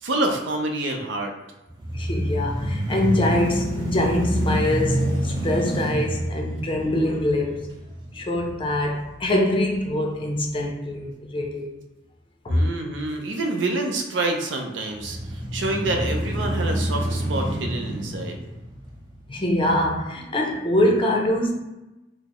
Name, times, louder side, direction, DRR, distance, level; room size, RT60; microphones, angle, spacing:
voice 1, 0.0-1.3 12.5-15.2 15.5-18.4, right 2 dB, 75° right, 0.6 m, -27 dB
sound 1, 1.7-9.8 10.3-10.4 14.9-19.4, right 1 dB, 25° right, 0.4 m, -28 dB
voice 2, 1.9-7.7 8.1-11.7 12.4-12.7 19.3-21.5, left 1 dB, 30° left, 0.5 m, -24 dB
4.1 x 2.0 x 2.9 m
head